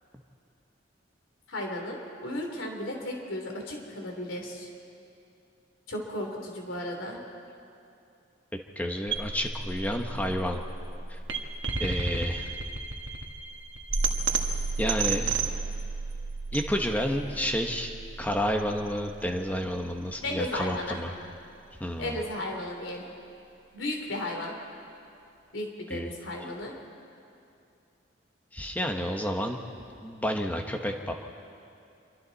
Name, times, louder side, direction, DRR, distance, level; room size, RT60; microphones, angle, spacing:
voice 1, 1.5-4.7 5.9-7.2 20.2-21.0 22.0-23.1 23.7-24.5 25.5-26.7, left 1 dB, 90° left, 1 dB, 3.5 m, -34 dB
voice 2, 8.7-10.6 11.1-11.2 11.8-12.6 14.8-15.5 16.5-17.9 18.2-21.1 21.8-22.2 25.9-26.1 28.5-29.6 30.0-31.1, equal, 10° left, 3 dB, 1.3 m, -30 dB
sound 1, 9.1-21.1, right 4 dB, 80° right, 1.5 m, -33 dB
26.5 x 23.5 x 4.2 m, 2.6 s
head